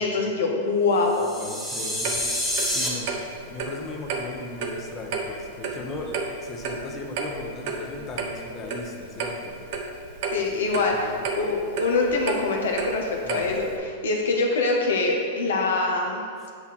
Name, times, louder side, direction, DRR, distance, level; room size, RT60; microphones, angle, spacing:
voice 1, 0.0-1.2 10.3-16.3, left 3 dB, 75° left, 1 dB, 0.8 m, -24 dB
sound 1, 1.1-2.9, equal, 5° right, 1.4 m, -28 dB
voice 2, 1.2-3.1 3.4-6.2 6.4-9.6 10.4-11.3 13.2-13.5 16.4-16.5, left 2 dB, 30° left, 1 dB, 1.0 m, -38 dB
Clock, 2.0-13.8, right 4 dB, 55° right, 0.8 m, -33 dB
8.0 x 2.8 x 6.0 m, 2.1 s
hypercardioid pair, 100°, 0 cm